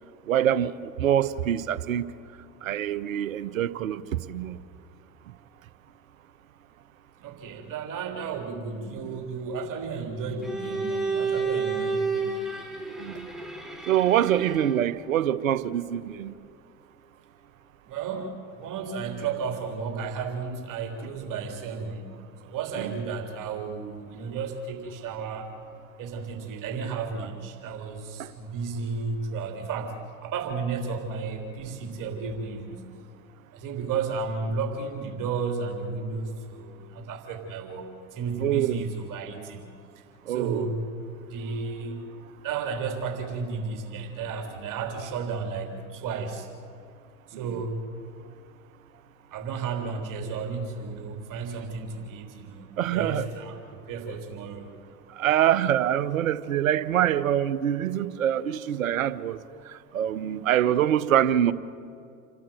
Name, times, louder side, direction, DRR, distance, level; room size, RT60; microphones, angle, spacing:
voice 1, 0.3-2.1 2.6-4.6 13.0-13.3 13.9-16.3 22.8-23.0 28.2-28.3 38.4-38.9 40.3-40.7 52.8-53.3 55.2-59.4 59.7-61.5, right 11 dB, 85° right, 0.9 m, -25 dB
voice 2, 7.2-12.4 17.9-22.1 22.4-25.5 26.0-30.0 30.2-32.8 33.5-39.7 40.0-40.8 41.3-42.0 42.4-46.5 47.3-47.8 49.3-54.7, right 5 dB, 50° right, 3.6 m, -33 dB
Bowed string instrument, 10.4-14.9, right 4 dB, ahead, 3.9 m, -30 dB
29.0 x 12.0 x 9.2 m
hypercardioid pair, 75°, 40 cm